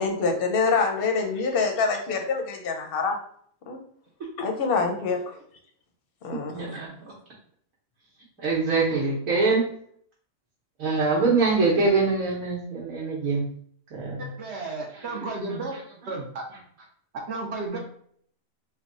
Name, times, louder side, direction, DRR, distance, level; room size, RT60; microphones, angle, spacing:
voice 1, 0.0-3.2 3.7-3.8 4.4-5.2 6.2-6.8, left 4 dB, 55° left, 3 dB, 0.7 m, -25 dB
voice 2, 6.5-6.9 8.4-9.6 10.8-13.5 13.9-14.3 14.9-15.2 15.7-15.8 17.7-17.8, right 3 dB, 80° right, -5 dB, 1.3 m, -24 dB
voice 3, 14.4-15.7 16.1-16.4 17.3-17.8, right 3 dB, 60° right, -1 dB, 1.0 m, -32 dB
3.3 x 2.2 x 3.7 m, 0.62 s
omnidirectional pair, 1.5 m